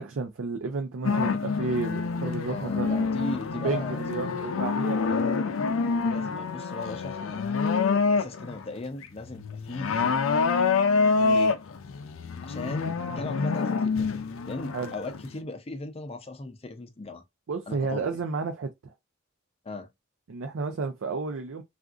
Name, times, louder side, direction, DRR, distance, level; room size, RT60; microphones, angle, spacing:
voice 1, 0.0-3.0 3.5-5.6 11.2-11.4 14.7-14.9 17.5-18.9 20.3-21.6, right 4 dB, 75° right, 0.5 m, -32 dB
sound 1, 1.0-8.7 9.0-15.4, left 4 dB, 80° left, 0.4 m, -27 dB
voice 2, 2.5-4.3 5.1-5.3 5.8-10.2 11.3-11.5 12.4-14.1 14.5-17.2 17.7-18.1 19.6-19.9, left 2 dB, 30° left, 0.5 m, -38 dB
3.5 x 2.5 x 2.3 m
head